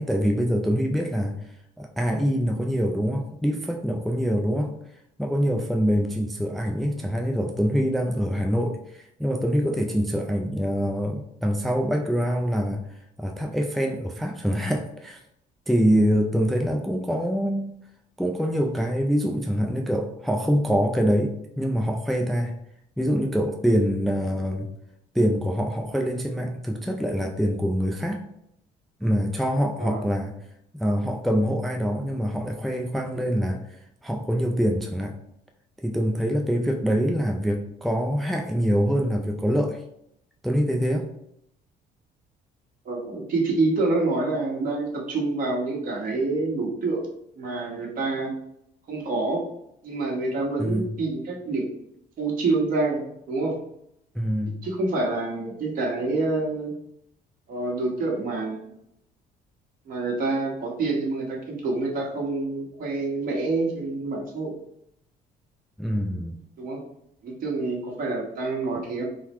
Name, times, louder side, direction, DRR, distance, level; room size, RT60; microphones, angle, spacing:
voice 1, 0.0-1.4 1.8-4.7 5.2-12.9 13.2-15.2 15.7-17.7 18.2-22.5 23.0-24.7 25.1-28.2 29.0-30.3 30.7-33.6 34.0-35.2 35.8-39.8 40.4-41.1 50.6-50.9 54.1-54.6 65.8-66.4, equal, ahead, 3 dB, 0.4 m, -25 dB
voice 2, 42.8-47.0 47.4-48.3 48.9-49.5 49.8-51.7 52.2-53.6 54.6-56.7 57.5-58.6 59.8-64.5 66.6-66.8 67.2-69.0, right 3 dB, 55° right, -2 dB, 1.4 m, -27 dB
3.8 x 2.1 x 4.4 m, 0.75 s
cardioid pair, 110°, 17 cm